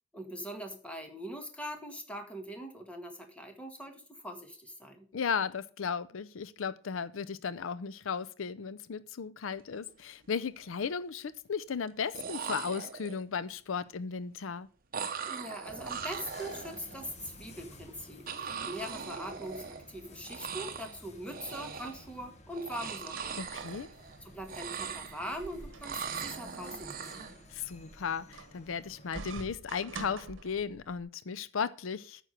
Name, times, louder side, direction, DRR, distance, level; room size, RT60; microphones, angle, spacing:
voice 1, 0.1-5.1 15.3-23.4 24.2-27.4, equal, 5° left, 1.6 m, -42 dB
voice 2, 5.1-14.7 23.4-23.9 27.5-32.2, left 6 dB, 85° left, 0.5 m, -35 dB
sound 1, 9.7-9.9 10.2-10.8 11.9-12.0 12.1-13.4 14.9-17.1 18.3-20.0 20.2-21.0 21.3-22.1 22.5-24.2 24.4-25.4 25.8-27.4, right 6 dB, 45° right, 1.0 m, -40 dB
sound 2, 15.7-29.4, left 1 dB, 35° left, 1.4 m, -54 dB
sound 3, 22.7-31.0, right 3 dB, 75° right, 1.1 m, -48 dB
9.2 x 6.1 x 6.5 m
head